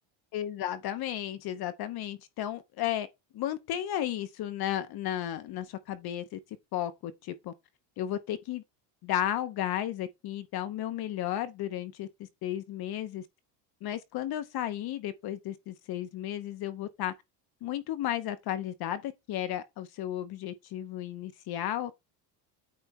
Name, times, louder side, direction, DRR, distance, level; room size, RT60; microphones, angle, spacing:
voice 1, 0.3-3.1 3.3-6.4 6.7-7.5 8.0-8.6 9.0-12.1 12.4-13.2 13.8-17.1 17.6-21.9, left 12 dB, 50° left, 1.0 m, -34 dB
8.8 x 3.3 x 4.1 m
cardioid pair, 130°, 48 cm